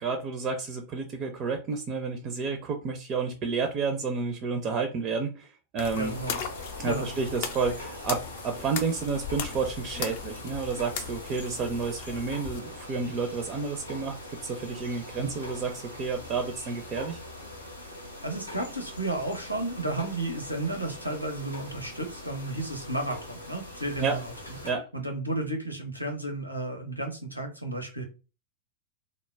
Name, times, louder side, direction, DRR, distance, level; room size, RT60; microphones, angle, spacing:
voice 1, 0.0-6.1 6.8-17.2 24.0-24.2 24.6-24.8, right 4 dB, 35° right, 5 dB, 0.4 m, -30 dB
sound 1, 5.8-12.6, left 7 dB, 50° left, 0.4 m, -38 dB
sound 2, 5.9-24.7, left 1 dB, 85° left, 0.6 m, -42 dB
voice 2, 5.9-6.4 6.8-7.1 15.1-15.3 18.2-28.0, right 2 dB, 90° right, 2 dB, 0.6 m, -33 dB
2.1 x 2.0 x 3.3 m, 0.32 s
figure-of-eight pair, 90°, 0 cm